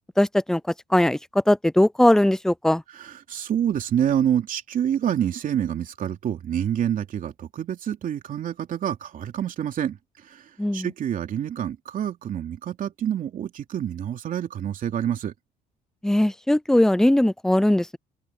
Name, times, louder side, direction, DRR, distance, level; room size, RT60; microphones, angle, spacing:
voice 1, 0.2-0.6 0.9-1.2 1.5-2.8 10.6-10.9 16.0-18.0, left 1 dB, 5° left, 0.5 m, -19 dB
voice 2, 2.9-10.0 10.3-10.4 10.7-15.3, right 9 dB, 55° right, 2.9 m, -27 dB
cardioid pair, 110°, 17 cm